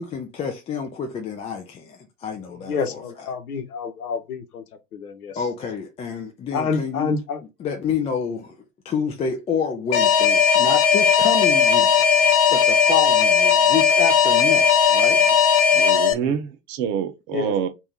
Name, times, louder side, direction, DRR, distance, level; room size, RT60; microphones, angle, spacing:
voice 1, 0.0-3.3 5.4-7.1 7.6-8.6 8.8-15.2, left 6 dB, 15° left, 0.4 m, -28 dB
voice 2, 2.7-4.6 4.9-5.4 6.5-7.4 16.1-16.3 17.3-17.5, left 5 dB, 70° left, 1.1 m, -28 dB
Alarm, 9.9-16.1, left 7 dB, 45° left, 1.0 m, -17 dB
voice 3, 15.7-17.7, right 8 dB, 40° right, 0.9 m, -26 dB
3.5 x 2.7 x 4.3 m
figure-of-eight pair, 85°, 46 cm